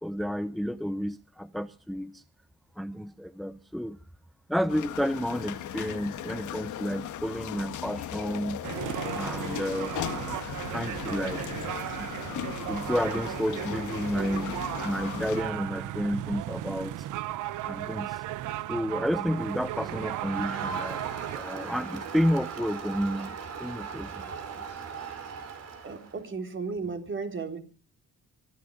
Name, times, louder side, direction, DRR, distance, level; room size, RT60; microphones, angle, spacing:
voice 1, 0.0-2.2 2.8-4.0 4.5-8.6 9.1-10.0 10.7-11.4 11.7-12.1 12.7-17.1 17.6-18.2 18.7-21.0 21.3-24.3 24.6-24.7, equal, ahead, 0.7 m, -31 dB
sound 1, 4.7-15.4, left 10 dB, 75° left, 1.8 m, -37 dB
sound 2, 8.6-21.4, right 13 dB, 85° right, 1.0 m, -35 dB
Crowd, 19.4-26.2, right 5 dB, 55° right, 4.8 m, -38 dB
voice 2, 25.8-27.6, right 4 dB, 40° right, 3.9 m, -35 dB
24.5 x 10.5 x 5.3 m
cardioid pair, 90°, 30 cm